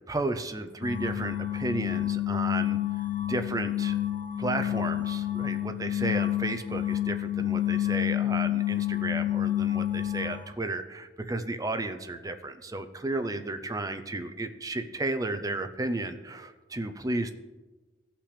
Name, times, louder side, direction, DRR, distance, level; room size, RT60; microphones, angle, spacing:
voice 1, 0.1-4.0 4.4-17.3, right 2 dB, 20° right, 8 dB, 0.5 m, -33 dB
sound 1, 0.8-10.5, left 13 dB, 45° left, 0.6 m, -29 dB
16.0 x 5.9 x 3.3 m, 1.2 s
head